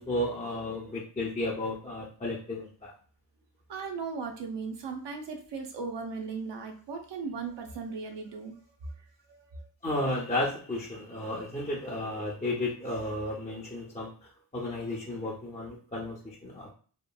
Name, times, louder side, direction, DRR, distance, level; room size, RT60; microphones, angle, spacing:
voice 1, 0.0-2.9 9.8-14.1 14.5-16.7, left 1 dB, 20° left, -5 dB, 0.5 m, -33 dB
voice 2, 3.7-8.9 9.3-9.6, right 4 dB, 75° right, 4 dB, 0.7 m, -37 dB
2.9 x 2.5 x 2.3 m, 0.42 s
cardioid pair, 80°, 43 cm